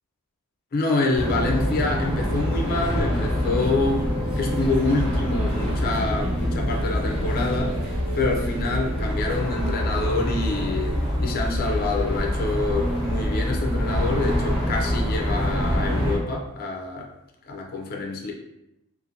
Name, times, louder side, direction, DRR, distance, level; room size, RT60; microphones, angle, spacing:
voice 1, 0.7-4.1 4.4-7.8 8.2-17.1 17.5-18.3, left 2 dB, 40° left, 1 dB, 0.4 m, -26 dB
sound 1, 1.1-16.1, equal, 5° right, 1.0 m, -25 dB
sound 2, 2.6-10.4, equal, 45° right, 0.6 m, -40 dB
2.6 x 2.5 x 2.8 m, 0.89 s
head